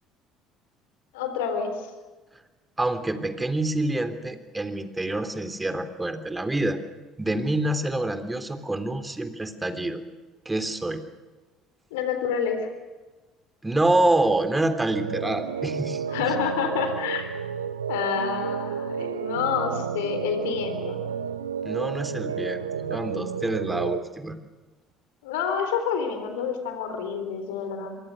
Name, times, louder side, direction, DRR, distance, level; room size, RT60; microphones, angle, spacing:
voice 1, 1.1-1.9 11.9-12.7 16.1-17.3 17.9-21.0 25.2-28.0, left 7 dB, 75° left, 7 dB, 3.8 m, -28 dB
voice 2, 2.8-6.8 7.2-10.0 10.5-11.0 13.6-16.0 21.7-24.4, right 2 dB, 15° right, 9 dB, 3.5 m, -26 dB
sound 1, 14.9-24.0, right 7 dB, 85° right, 1.2 m, -31 dB
28.5 x 23.5 x 6.6 m, 1.2 s
hypercardioid pair, 60°, 0 cm